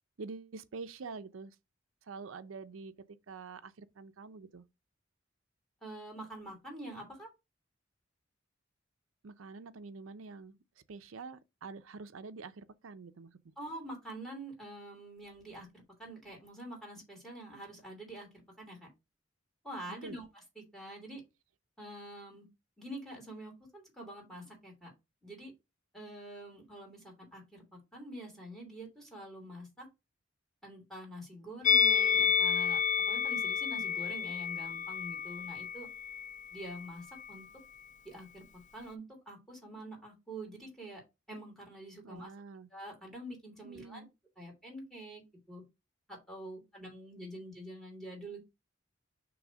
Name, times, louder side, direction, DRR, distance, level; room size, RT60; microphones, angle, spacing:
voice 1, 0.2-1.5 2.1-2.9 3.3-4.6 9.2-10.6 10.9-13.5 20.0-20.2 42.0-42.7 43.6-44.1, right 4 dB, 90° right, 0.6 m, -46 dB
voice 2, 5.8-7.3 13.6-18.8 19.6-21.2 21.8-22.5 22.8-24.9 25.2-25.5 25.9-29.9 30.6-32.8 33.1-35.9 36.5-37.4 38.0-38.4 38.7-41.0 41.3-42.3 42.7-44.0 44.4-45.2 45.5-45.6 46.1-48.4, right 1 dB, ahead, 2.9 m, -46 dB
Musical instrument, 31.6-36.9 37.1-37.4, left 7 dB, 40° left, 0.4 m, -30 dB
6.2 x 3.1 x 5.0 m
head